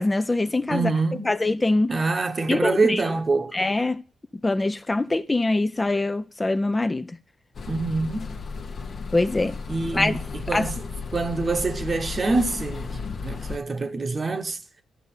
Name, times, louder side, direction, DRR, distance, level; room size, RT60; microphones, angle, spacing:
voice 1, 0.0-0.9 1.2-1.9 2.5-3.0 3.5-4.0 4.4-7.2 9.1-9.6 9.9-10.2 10.5-10.7, left 2 dB, 25° left, 0.6 m, -23 dB
voice 2, 0.7-1.3 1.9-3.5 7.7-8.4 9.7-10.9 11.1-14.6, right 3 dB, 40° right, 1.1 m, -25 dB
sound 1, 7.5-13.6, left 4 dB, 60° left, 1.0 m, -34 dB
12.5 x 5.3 x 6.6 m
supercardioid pair, 55°, 0 cm